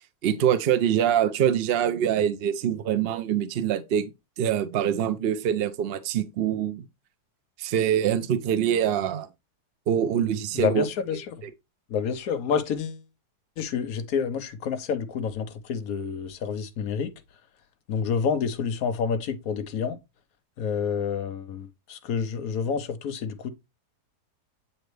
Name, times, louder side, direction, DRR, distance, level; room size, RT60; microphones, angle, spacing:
voice 1, 0.2-4.1 4.4-6.8 7.6-9.3 9.9-10.8, right 9 dB, 75° right, 0.5 m, -24 dB
voice 2, 10.5-11.4 11.9-13.0 13.6-17.1 17.9-20.0 20.6-23.5, left 6 dB, 65° left, 1.2 m, -28 dB
7.8 x 4.2 x 3.2 m
omnidirectional pair, 1.7 m